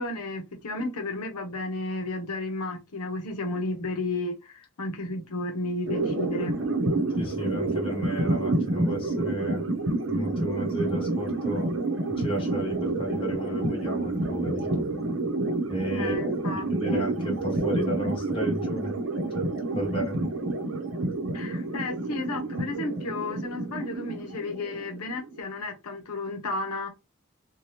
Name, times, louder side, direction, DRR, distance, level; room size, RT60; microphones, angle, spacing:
voice 1, 0.0-6.5 15.9-17.0 21.3-26.9, left 2 dB, 90° left, 0.7 m, -33 dB
sound 1, 5.9-25.4, right 2 dB, 60° right, 0.7 m, -29 dB
voice 2, 7.1-9.7 10.1-11.7 12.2-14.8 15.7-16.2 16.5-19.0 19.3-20.3, right 1 dB, 25° left, 1.0 m, -33 dB
2.7 x 2.2 x 3.1 m
head